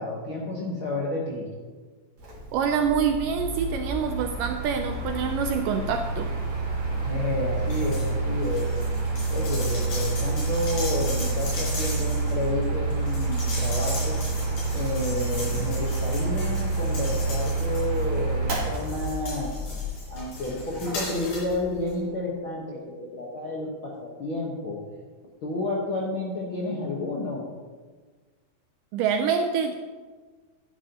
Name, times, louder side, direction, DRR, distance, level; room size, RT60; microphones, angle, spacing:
voice 1, 0.0-1.5 7.0-8.7 9.3-14.2 14.7-19.5 20.1-24.8 25.4-27.4, left 2 dB, 65° left, -4 dB, 1.3 m, -30 dB
Mechanical fan, 2.2-21.8, right 3 dB, 45° right, 3.1 m, -28 dB
voice 2, 2.5-6.3 28.9-29.7, right 7 dB, 80° right, 6 dB, 1.9 m, -26 dB
Shaking Metal Cutlery Holder, 7.7-8.1 8.4-18.2 18.6-21.6 21.9-22.0, left 2 dB, 90° left, 5.8 m, -38 dB
13.0 x 10.5 x 2.9 m, 1.4 s
omnidirectional pair, 4.2 m